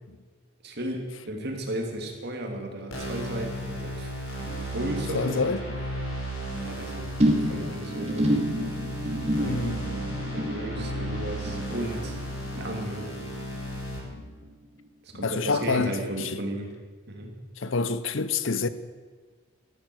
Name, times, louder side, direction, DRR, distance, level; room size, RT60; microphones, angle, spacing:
voice 1, 0.6-4.1 4.4-5.5 6.5-7.1 7.4-8.4 9.4-9.9 10.3-12.2 12.5-13.1 15.0-16.7 17.1-17.4, right 1 dB, 50° right, 2.7 m, -34 dB
sound 1, 2.9-14.0, equal, 80° left, 6.8 m, -34 dB
voice 2, 5.1-5.6 9.4-9.8 14.1-14.2 15.1-16.4 17.6-18.7, left 4 dB, 65° left, 0.7 m, -27 dB
sound 2, 7.2-13.8 14.0-14.5 14.8-14.9, equal, 30° right, 2.6 m, -29 dB
13.5 x 13.0 x 7.8 m
head